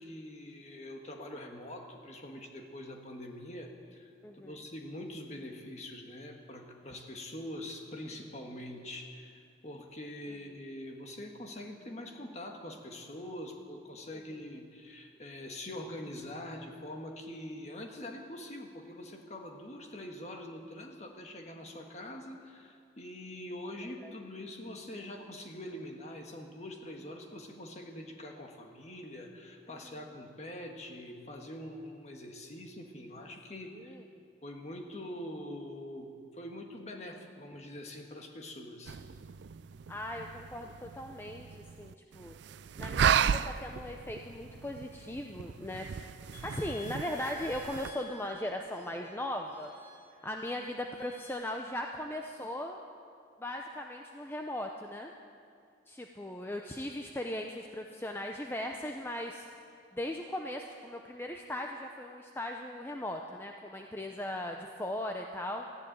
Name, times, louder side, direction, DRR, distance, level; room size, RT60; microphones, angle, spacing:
voice 1, 0.0-33.9 34.4-39.0, left 1 dB, 35° left, 2 dB, 1.5 m, -44 dB
voice 2, 4.2-4.6 14.1-14.2 29.8-30.1 33.5-34.0 39.9-41.5 41.8-42.3 42.8-45.9 46.4-49.7 50.2-52.8 53.4-55.1 55.9-59.5 59.9-65.6, left 1 dB, 10° left, 3 dB, 0.5 m, -38 dB
sound 1, 38.9-47.9, right 7 dB, 70° right, 0.4 m, -35 dB
sound 2, 46.3-51.4, left 2 dB, 85° left, 5.3 m, -52 dB
14.0 x 10.5 x 8.7 m, 2.3 s
head